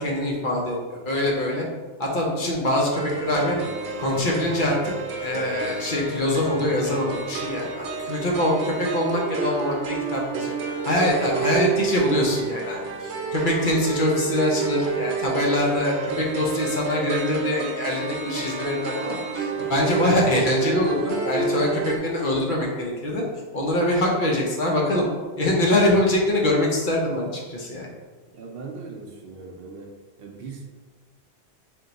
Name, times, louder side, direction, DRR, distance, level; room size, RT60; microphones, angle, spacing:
voice 1, 0.0-1.7 2.0-3.6 4.0-4.8 5.2-10.5 10.8-23.2 23.5-25.1 25.4-27.9, left 1 dB, 50° left, -2 dB, 0.8 m, -24 dB
sound 1, 2.9-22.0, right 5 dB, 90° right, 0.9 m, -29 dB
voice 2, 28.3-29.9 30.2-30.6, right 4 dB, 65° right, 0 dB, 0.7 m, -39 dB
3.5 x 2.9 x 3.8 m, 1.4 s
omnidirectional pair, 1.1 m